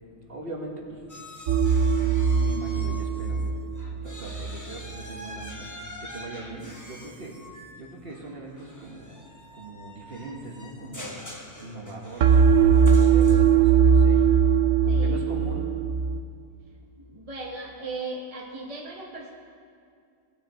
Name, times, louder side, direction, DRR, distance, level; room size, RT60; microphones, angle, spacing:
voice 1, 0.3-1.0 1.9-3.5 3.9-5.7 6.0-9.3 9.5-11.3 11.6-14.2 14.8-15.7, right 2 dB, 45° right, -1 dB, 1.5 m, -40 dB
sound 1, 1.1-3.5 3.8-13.7, left 1 dB, 15° left, 1.0 m, -44 dB
sound 2, 1.5-4.6 12.2-16.2, right 6 dB, 75° right, 1.0 m, -20 dB
voice 2, 14.9-15.3 17.1-19.3, right 3 dB, 30° right, -1 dB, 1.1 m, -37 dB
19.0 x 6.6 x 4.3 m, 2.3 s
omnidirectional pair, 1.4 m